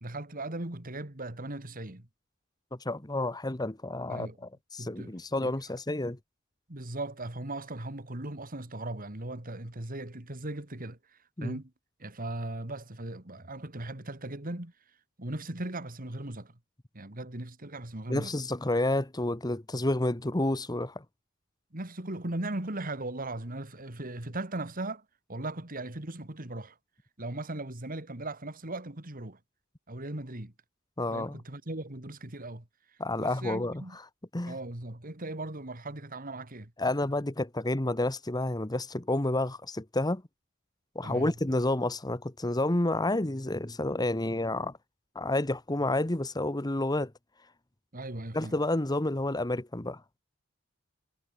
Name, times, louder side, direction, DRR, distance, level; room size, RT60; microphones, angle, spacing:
voice 1, 0.0-2.1 4.1-4.4 4.8-5.1 5.4-5.5 6.7-11.0 11.4-11.7 12.0-14.7 15.2-16.6 16.9-18.3 21.7-26.8 27.2-29.4 29.9-30.5 31.1-32.7 33.2-34.0 34.4-36.7 41.0-41.3 47.9-48.5, right 2 dB, 40° right, 2.6 m, -38 dB
voice 2, 2.8-6.2 11.4-11.6 18.1-21.0 31.0-31.4 33.0-34.0 34.3-34.6 36.8-40.2 40.9-44.7 45.1-47.1 48.3-50.0, left 2 dB, 20° left, 1.2 m, -30 dB
head